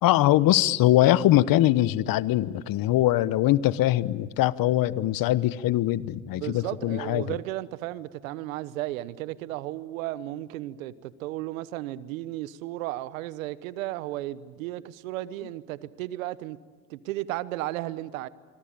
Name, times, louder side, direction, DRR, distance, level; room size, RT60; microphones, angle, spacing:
voice 1, 0.0-7.3, left 14 dB, 60° left, 1.0 m, -22 dB
voice 2, 6.1-16.6 16.9-18.3, right 15 dB, 90° right, 1.1 m, -34 dB
26.5 x 25.0 x 8.9 m
supercardioid pair, 75°, 39 cm